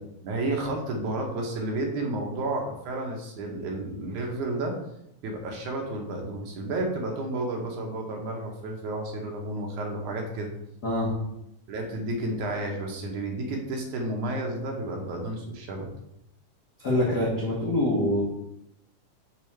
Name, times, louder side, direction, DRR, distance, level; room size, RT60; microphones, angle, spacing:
voice 1, 0.2-4.8 5.2-10.5 11.7-15.9, right 2 dB, 75° right, 1 dB, 2.3 m, -31 dB
voice 2, 10.8-11.1 16.8-18.2, left 1 dB, 60° left, -5 dB, 1.0 m, -25 dB
6.8 x 3.6 x 4.4 m, 0.81 s
omnidirectional pair, 3.7 m